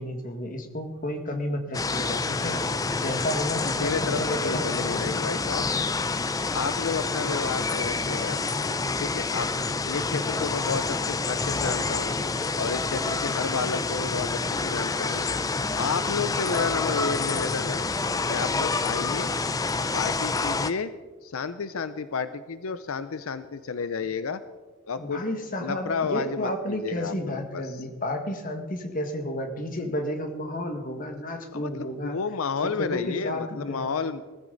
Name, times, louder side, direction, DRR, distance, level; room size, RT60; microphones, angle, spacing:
voice 1, 0.0-2.6 2.9-5.1 25.0-32.2 32.6-33.9, left 1 dB, 40° left, 5 dB, 1.8 m, -32 dB
sound 1, 1.7-20.7, left 3 dB, 15° left, 0.4 m, -28 dB
voice 2, 3.8-5.7 6.5-8.4 9.0-9.5 9.8-12.1 12.6-15.3 15.8-17.9 18.3-19.3 19.9-20.9 21.2-24.4 24.9-25.2 25.6-27.8 31.5-34.2, left 5 dB, 85° left, 12 dB, 0.6 m, -31 dB
19.0 x 15.0 x 4.0 m, 1.3 s
head